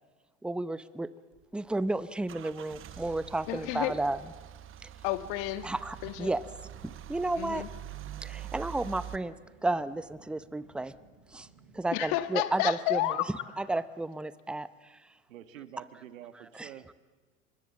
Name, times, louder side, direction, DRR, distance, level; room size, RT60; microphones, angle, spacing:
voice 1, 0.4-1.1 1.5-4.2 5.6-6.4 7.1-7.6 8.2-9.3 9.6-10.9 11.3-11.5 11.7-13.0 13.6-14.7 16.5-16.7, right 2 dB, ahead, 14 dB, 0.7 m, -32 dB
Car / Engine starting / Idling, 1.3-9.2, right 11 dB, 30° right, 1.0 m, -45 dB
voice 2, 3.5-4.0 5.0-5.7 6.0-6.3 7.4-7.7 11.9-13.4, left 14 dB, 55° left, 10 dB, 1.5 m, -31 dB
sound 1, 5.2-12.2, right 4 dB, 60° right, 7.2 m, -60 dB
voice 3, 15.3-16.9, right 11 dB, 80° right, 10 dB, 1.5 m, -47 dB
24.5 x 22.0 x 7.5 m, 1.4 s
hypercardioid pair, 95°, 40 cm